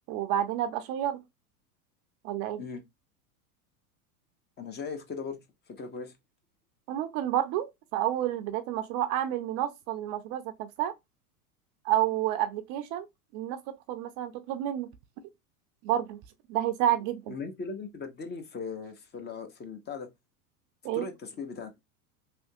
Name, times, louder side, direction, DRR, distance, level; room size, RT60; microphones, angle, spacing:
voice 1, 0.1-1.2 2.2-2.6 6.9-7.7 7.9-10.9 11.8-13.1 13.3-13.6 13.9-14.9 15.8-16.2 16.5-17.3 20.8-21.1, right 12 dB, 40° right, 0.5 m, -29 dB
voice 2, 4.6-5.4 5.7-6.2 17.3-20.1 20.9-21.7, left 5 dB, 20° left, 0.7 m, -38 dB
3.4 x 2.8 x 2.7 m
hypercardioid pair, 100°, 46 cm